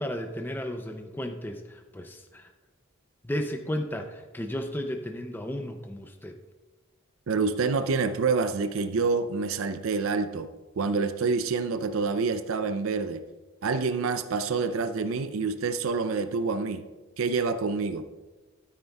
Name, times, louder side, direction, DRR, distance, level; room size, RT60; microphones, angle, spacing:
voice 1, 0.0-2.5 3.2-6.3, equal, 10° left, 5 dB, 0.4 m, -34 dB
voice 2, 7.3-10.5 10.8-13.2 13.6-16.8 17.2-18.0, right 4 dB, 75° right, 10 dB, 0.5 m, -27 dB
12.5 x 9.3 x 2.3 m, 1.2 s
head